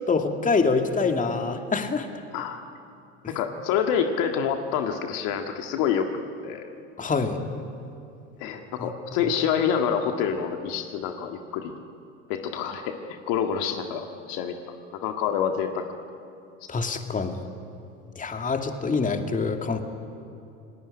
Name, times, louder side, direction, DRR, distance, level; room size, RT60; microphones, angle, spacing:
voice 1, 0.1-2.1 3.2-3.3 7.0-7.4 8.8-8.9 16.7-17.4 18.2-19.8, left 4 dB, 20° left, 5 dB, 2.4 m, -25 dB
voice 2, 3.3-6.7 8.4-11.7 12.3-15.8, left 7 dB, 60° left, 5 dB, 2.0 m, -27 dB
28.0 x 19.0 x 9.9 m, 2.5 s
hypercardioid pair, 80°, 36 cm